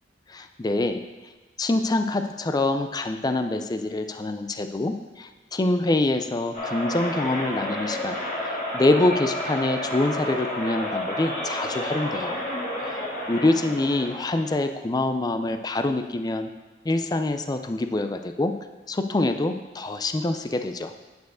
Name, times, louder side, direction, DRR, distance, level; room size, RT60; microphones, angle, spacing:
voice 1, 0.3-1.0 1.6-12.4 12.8-13.0 13.3-16.5 16.8-18.6 18.9-20.9, left 2 dB, 25° left, 7 dB, 0.4 m, -25 dB
sound 1, 6.5-14.5, left 1 dB, 50° left, 3.0 m, -31 dB
9.5 x 4.6 x 6.2 m, 1.2 s
head